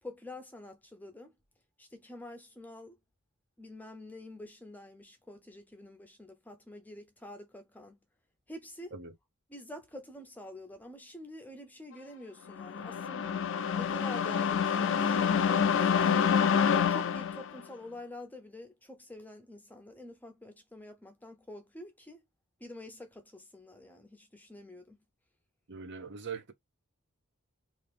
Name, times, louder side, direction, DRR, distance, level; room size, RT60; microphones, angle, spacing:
voice 1, 0.0-1.3 1.8-3.0 3.6-8.0 8.5-8.9 9.5-13.4 13.8-16.5 16.9-22.2 22.6-25.0, left 1 dB, 5° left, 0.5 m, -47 dB
sound 1, 12.5-17.6, left 7 dB, 55° left, 0.4 m, -27 dB
voice 2, 25.7-26.5, right 5 dB, 50° right, 0.7 m, -41 dB
2.8 x 2.6 x 3.3 m
head